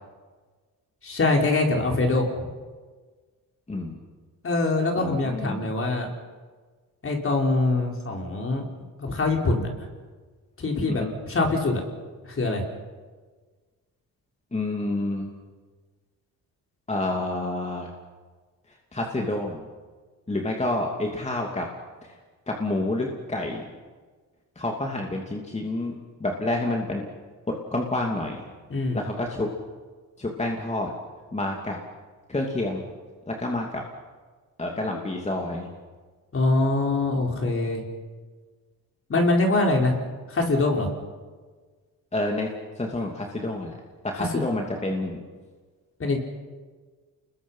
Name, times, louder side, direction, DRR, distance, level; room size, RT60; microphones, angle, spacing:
voice 1, 1.0-2.5 4.4-6.1 7.0-8.6 9.0-9.7 10.6-11.8 12.2-12.6 28.7-29.0 36.3-37.8 39.1-39.9 40.3-40.9 44.2-44.4 46.0-46.2, left 2 dB, 40° left, 1 dB, 4.7 m, -23 dB
voice 2, 5.0-5.7 10.9-11.1 14.5-15.3 16.9-17.9 18.9-19.7 20.3-21.7 22.0-22.1 22.5-23.7 24.6-25.9 26.2-27.1 27.7-28.5 28.9-29.5 30.2-30.9 31.3-31.8 32.3-32.9 33.3-33.8 34.6-35.7 42.1-42.5 42.8-43.8 44.0-45.2, left 2 dB, 20° left, 0 dB, 2.8 m, -28 dB
29.0 x 21.5 x 5.8 m, 1.4 s
cardioid pair, 90°, 35 cm